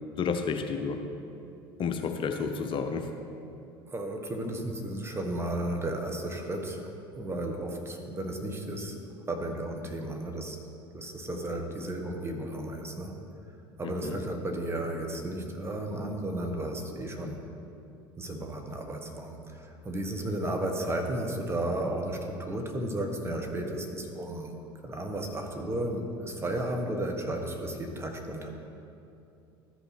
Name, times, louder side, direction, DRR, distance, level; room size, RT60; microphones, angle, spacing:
voice 1, 0.2-1.0 1.8-3.1 14.0-14.2, left 5 dB, 40° left, 5 dB, 0.7 m, -30 dB
voice 2, 3.9-8.9 9.3-10.6 10.9-13.2 13.8-17.5 18.2-24.5 24.8-28.5, right 1 dB, 20° right, 3 dB, 1.3 m, -33 dB
13.5 x 5.5 x 4.4 m, 2.7 s
hypercardioid pair, 70°, 13 cm